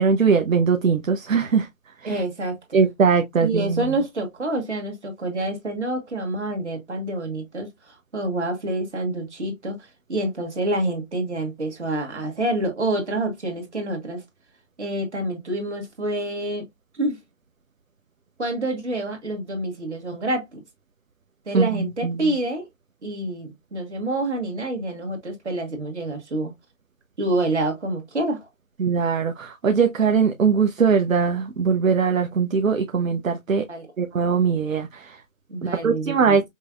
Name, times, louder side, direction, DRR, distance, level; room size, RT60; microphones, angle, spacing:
voice 1, 0.0-1.7 2.0-2.2 2.7-3.9 21.5-22.3 28.8-33.6 34.0-35.2 35.8-36.4, right 6 dB, 70° right, 0.7 m, -21 dB
voice 2, 2.0-2.9 3.4-14.2 14.8-16.6 16.9-17.2 18.4-20.6 21.5-22.7 23.0-26.5 27.2-28.5 33.7-33.9 35.5-36.4, right 1 dB, 55° right, 1.5 m, -27 dB
5.3 x 2.1 x 2.4 m
figure-of-eight pair, 165°, 41 cm